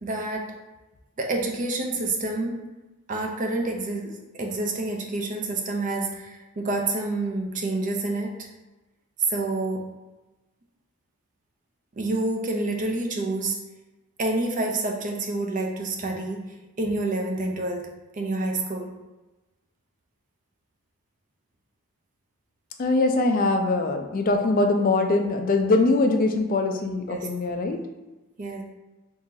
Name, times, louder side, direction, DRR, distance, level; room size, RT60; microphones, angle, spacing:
voice 1, 0.0-0.6 1.2-2.6 3.1-8.5 9.2-9.9 11.9-13.6 14.2-18.9 27.1-27.3 28.4-28.6, right 2 dB, 35° right, 1 dB, 0.5 m, -28 dB
voice 2, 22.8-27.8, left 2 dB, 40° left, 5 dB, 0.4 m, -22 dB
3.7 x 2.9 x 2.7 m, 1.1 s
head